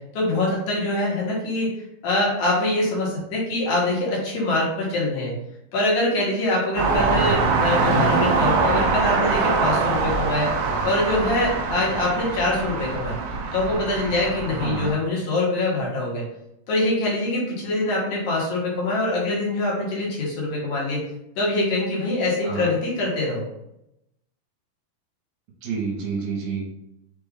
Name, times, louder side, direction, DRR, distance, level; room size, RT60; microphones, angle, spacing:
voice 1, 0.1-1.7 2.0-5.3 5.7-10.5 10.8-13.1 13.5-16.2 16.7-21.0 21.4-23.5, left 2 dB, 60° left, -5 dB, 2.4 m, -24 dB
sound 1, 6.8-14.9, right 4 dB, 85° right, 2.3 m, -23 dB
voice 2, 14.6-15.0 22.4-22.8 25.6-26.7, right 5 dB, 70° right, -2 dB, 2.5 m, -29 dB
5.9 x 2.6 x 3.5 m, 0.82 s
omnidirectional pair, 4.0 m